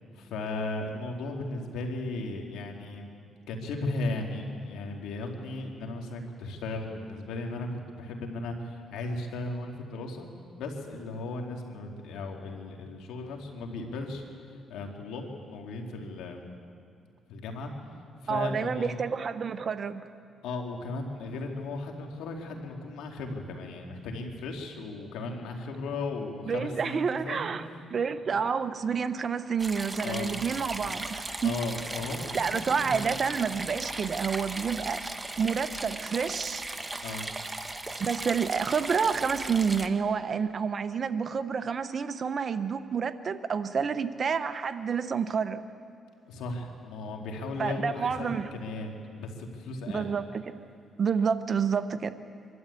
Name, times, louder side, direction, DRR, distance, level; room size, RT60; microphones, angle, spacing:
voice 1, 0.1-3.1 3.5-10.3 10.6-16.4 17.3-17.7 18.2-19.0 20.4-28.3 30.0-30.4 31.4-33.1 37.0-37.3 46.3-50.1, left 2 dB, 90° left, 2 dB, 2.7 m, -36 dB
voice 2, 18.3-20.0 26.5-27.6 27.9-31.6 32.3-35.0 35.4-36.6 38.0-45.6 47.6-48.5 49.9-50.3 51.0-52.1, right 6 dB, 45° right, 11 dB, 1.0 m, -29 dB
sound 1, 29.6-39.9, right 2 dB, 15° right, 1.2 m, -37 dB
25.0 x 12.5 x 8.5 m, 2.4 s
cardioid pair, 90°, 0 cm